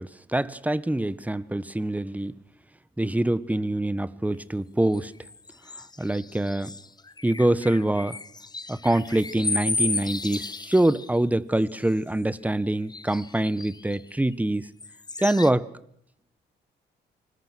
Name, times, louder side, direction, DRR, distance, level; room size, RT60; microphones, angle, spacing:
voice 1, 0.0-2.3 3.0-5.1 6.0-6.7 7.2-8.2 8.7-14.7 15.2-15.7, right 1 dB, 5° right, 1.3 m, -25 dB
sound 1, 4.9-11.2 11.6-12.2 12.9-14.3 14.8-15.5, left 3 dB, 20° left, 1.1 m, -34 dB
25.5 x 20.0 x 6.3 m
cardioid pair, 90°, 20 cm